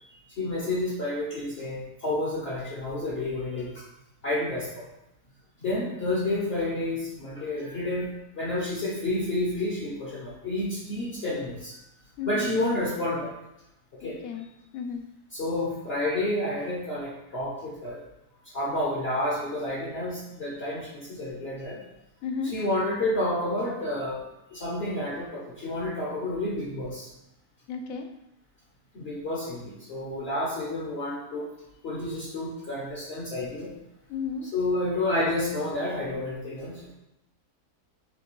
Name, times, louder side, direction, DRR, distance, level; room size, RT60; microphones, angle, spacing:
voice 1, 0.1-3.8 4.2-4.8 5.6-11.8 12.2-13.4 13.9-14.2 15.3-18.0 18.5-21.8 22.5-24.2 24.5-27.1 28.9-31.5 31.8-33.7 34.5-36.9, left 1 dB, 45° left, -6 dB, 1.0 m, -30 dB
voice 2, 12.2-12.5 14.0-14.5 14.7-15.0 22.2-22.5 27.7-28.1 34.1-34.5, left 5 dB, 70° left, 5 dB, 0.9 m, -33 dB
5.9 x 2.5 x 3.1 m, 0.84 s
omnidirectional pair, 1.7 m